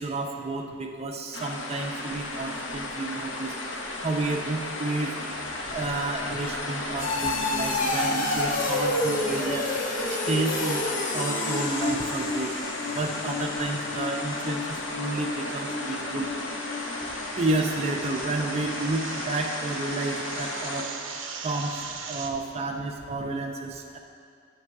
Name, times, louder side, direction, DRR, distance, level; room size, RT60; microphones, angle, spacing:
voice 1, 0.0-3.5 4.0-5.1 5.7-9.6 10.1-10.8 11.1-12.5 12.9-16.3 17.3-20.9 21.4-21.7 22.1-24.0, right 2 dB, 35° right, 3 dB, 0.5 m, -31 dB
sound 1, 1.3-20.8, left 2 dB, 75° left, 0.8 m, -35 dB
sound 2, 5.4-18.0 18.4-18.8 19.2-19.3, left 2 dB, 45° left, 0.7 m, -31 dB
sound 3, 7.1-22.3, right 5 dB, 85° right, 0.6 m, -43 dB
8.8 x 3.3 x 5.9 m, 2.3 s
head